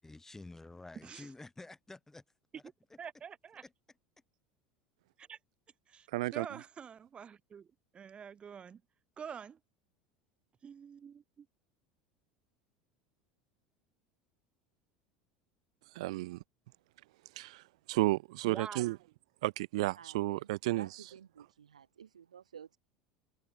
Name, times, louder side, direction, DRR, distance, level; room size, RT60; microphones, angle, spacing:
voice 1, 0.0-2.2 3.6-3.7, left 2 dB, 10° left, 7.2 m, -50 dB
voice 2, 3.0-3.6 5.2-5.4 5.9-7.7 7.9-8.8 9.2-9.6 10.6-11.5 18.4-18.9, right 7 dB, 30° right, 1.7 m, -47 dB
voice 3, 6.1-6.5 16.0-16.4 17.4-17.6 17.9-19.0 19.4-20.9, right 19 dB, 65° right, 0.4 m, -32 dB
voice 4, 19.9-22.8, right 8 dB, 85° right, 1.6 m, -53 dB
hypercardioid pair, 75°, 4 cm